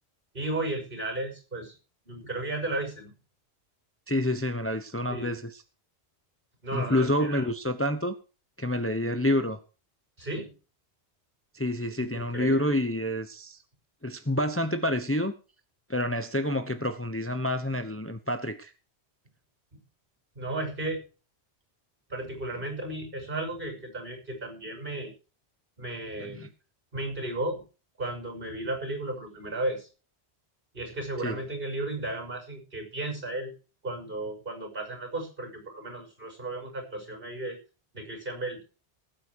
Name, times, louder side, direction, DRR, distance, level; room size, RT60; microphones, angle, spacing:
voice 1, 0.3-1.8 2.1-3.1 5.1-5.3 6.6-7.5 10.2-10.5 12.1-12.8 20.3-21.0 22.1-25.1 25.8-26.5 26.9-27.6 28.0-29.9 30.7-33.5 33.8-37.6 37.9-38.6, right 2 dB, 55° right, 4 dB, 6.4 m, -34 dB
voice 2, 4.1-5.5 6.7-8.1 8.6-9.6 11.5-13.6 14.0-15.3 15.9-18.7 26.2-26.5 31.2-31.4, left 1 dB, 15° left, 9 dB, 1.0 m, -28 dB
20.0 x 8.9 x 4.7 m, 0.35 s
omnidirectional pair, 1.1 m